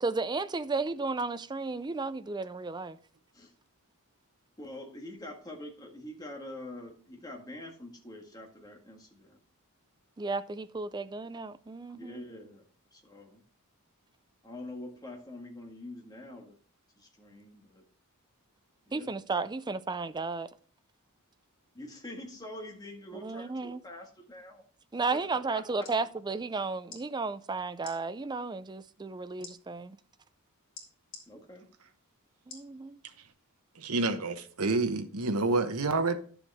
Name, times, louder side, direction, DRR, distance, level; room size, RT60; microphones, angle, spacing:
voice 1, 0.0-3.0 10.2-12.2 18.9-20.5 23.1-23.8 24.9-30.0 32.5-33.0, right 3 dB, 20° right, 0.4 m, -33 dB
voice 2, 4.6-9.4 11.9-12.6 12.9-13.4 14.4-16.6 17.0-17.8 18.9-19.1 21.7-24.6 25.5-25.9 31.3-31.6, left 1 dB, 20° left, 1.8 m, -45 dB
sound 1, 25.8-26.0 26.8-27.0 27.8-28.0 29.4-29.5 30.7-31.2 32.5-32.7 33.3-33.4, left 5 dB, 60° left, 3.2 m, -46 dB
voice 3, 33.8-36.2, right 3 dB, 85° right, 1.1 m, -28 dB
11.0 x 7.0 x 3.5 m
head